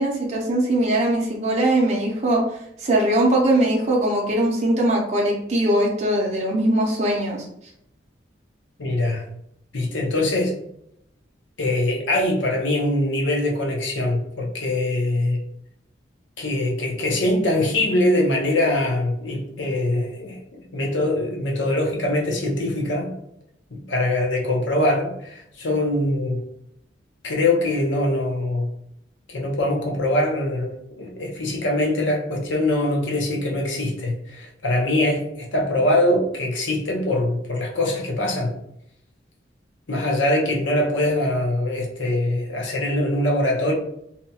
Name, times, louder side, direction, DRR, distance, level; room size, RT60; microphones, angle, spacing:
voice 1, 0.0-2.4 2.8-7.4, right 1 dB, 35° right, -2 dB, 0.5 m, -21 dB
voice 2, 8.8-9.2 9.7-10.5 11.6-15.4 16.4-23.1 23.7-26.4 27.2-28.7 29.3-38.5 39.9-43.7, left 1 dB, 85° left, 0 dB, 0.7 m, -23 dB
2.7 x 2.2 x 2.7 m, 0.76 s
head